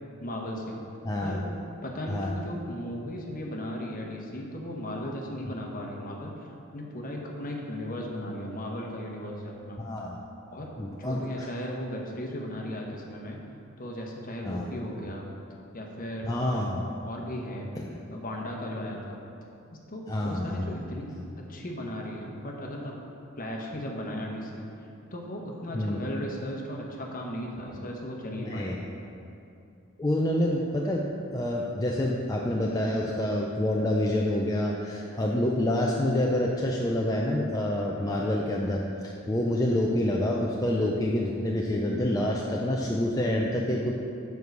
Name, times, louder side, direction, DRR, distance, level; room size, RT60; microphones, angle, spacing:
voice 1, 0.2-0.8 1.2-1.5 1.8-9.8 10.5-13.4 13.8-15.3 15.7-16.7 17.0-17.7 18.1-19.2 19.9-23.0 23.4-24.7 25.1-28.8, left 1 dB, 40° left, 0 dB, 1.1 m, -36 dB
voice 2, 1.0-1.4 2.1-2.4 9.8-10.3 10.8-11.5 14.4-14.7 16.2-16.9 20.1-20.8 25.7-26.0 28.4-28.8 30.0-43.9, left 1 dB, 15° left, -2 dB, 0.5 m, -27 dB
7.3 x 4.7 x 6.7 m, 2.7 s
head